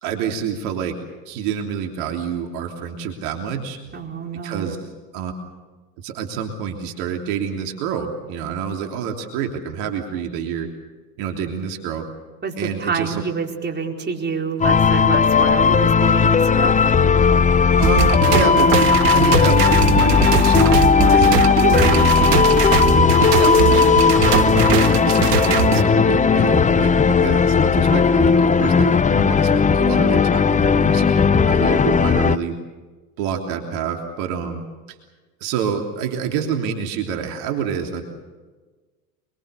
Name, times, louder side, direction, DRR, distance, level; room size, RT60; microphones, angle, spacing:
voice 1, 0.0-0.9 1.2-3.8 4.4-4.8 5.1-5.3 6.0-10.7 11.2-12.0 12.6-13.2 17.8-18.7 19.1-22.0 22.3-22.6 23.3-32.5 33.2-34.6 34.9-35.0 35.4-38.0, right 7 dB, 60° right, 3 dB, 3.3 m, -27 dB
voice 2, 3.9-4.7 12.4-16.8 21.0-21.2 21.6-22.6, right 5 dB, 20° right, 1 dB, 4.7 m, -27 dB
sound 1, 14.6-32.4, left 5 dB, 15° left, 0.8 m, -16 dB
sound 2, 17.8-25.8, right 8 dB, 80° right, 1.9 m, -21 dB
25.5 x 24.0 x 6.9 m, 1.3 s
hypercardioid pair, 85°, 46 cm